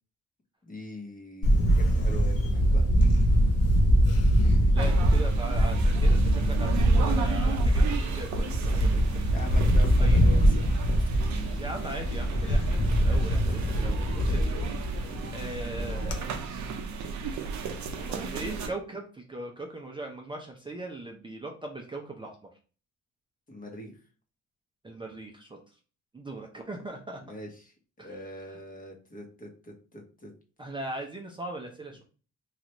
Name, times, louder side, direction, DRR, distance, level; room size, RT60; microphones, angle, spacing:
voice 1, 0.6-2.9 9.3-10.8 14.2-14.8 15.1-15.4 23.5-23.9 27.2-30.3, left 1 dB, 30° left, 2 dB, 1.0 m, -43 dB
Camera, 1.4-16.2, equal, 55° left, 0.8 m, -23 dB
voice 2, 4.6-9.1 10.0-10.2 11.6-14.5 15.3-16.3 18.0-22.3 24.8-25.6 26.1-27.2 28.0-28.2 28.5-28.6 30.6-32.0, right 2 dB, 15° right, 0 dB, 0.6 m, -39 dB
Shoe Store in Roubaix, 4.8-18.7, right 5 dB, 70° right, 0.6 m, -35 dB
3.2 x 2.5 x 2.9 m, 0.38 s
cardioid pair, 90°, 30 cm